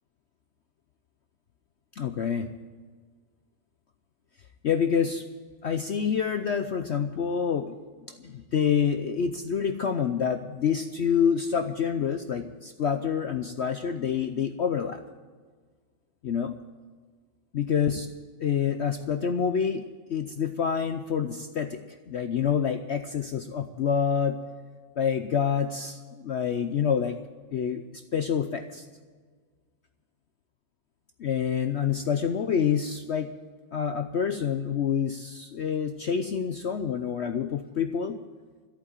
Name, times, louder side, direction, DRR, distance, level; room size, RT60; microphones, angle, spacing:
voice 1, 2.0-2.5 4.6-5.3 5.6-7.7 8.1-15.0 16.2-16.5 17.5-18.1 18.4-19.8 20.1-21.8 22.1-24.4 25.0-27.2 27.5-28.8 31.2-33.3 33.7-38.2, left 7 dB, 75° left, 8 dB, 0.6 m, -27 dB
14.0 x 8.8 x 9.0 m, 1.5 s
omnidirectional pair, 2.0 m